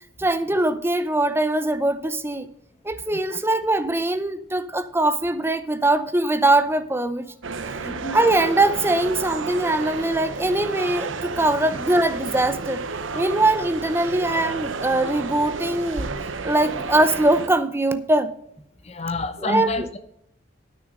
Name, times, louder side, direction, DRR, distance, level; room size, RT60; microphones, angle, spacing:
voice 1, 0.2-2.5 2.8-7.3 7.7-7.8 8.1-12.8 13.1-16.1 16.4-18.3 19.4-19.9, right 2 dB, 10° right, 0.6 m, -22 dB
sound 1, 7.4-17.5, right 4 dB, 85° right, 0.8 m, -31 dB
voice 2, 7.8-8.2 18.8-20.0, left 3 dB, 35° left, 0.9 m, -28 dB
9.2 x 6.4 x 6.5 m
head